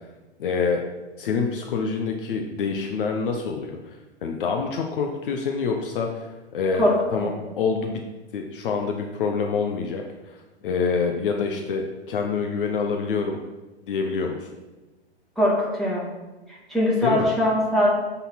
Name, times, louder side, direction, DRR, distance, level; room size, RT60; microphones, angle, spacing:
voice 1, 0.4-0.8 1.2-8.0 8.3-10.4 10.6-13.4 13.8-14.5 17.0-17.3, left 5 dB, 50° left, 3 dB, 0.8 m, -26 dB
voice 2, 15.4-16.1 16.7-17.9, left 1 dB, ahead, -7 dB, 2.3 m, -21 dB
9.1 x 4.1 x 4.3 m, 1.1 s
hypercardioid pair, 120°, 34 cm